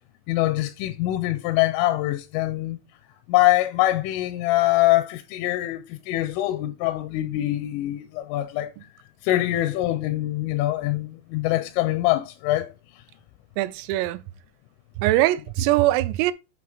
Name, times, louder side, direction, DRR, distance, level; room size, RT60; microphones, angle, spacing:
voice 1, 0.3-2.8 3.3-8.7 9.2-13.0, left 16 dB, 85° left, 3.0 m, -24 dB
voice 2, 13.6-14.2 15.0-16.3, right 16 dB, 90° right, 3.2 m, -22 dB
8.6 x 3.5 x 4.8 m
omnidirectional pair, 5.8 m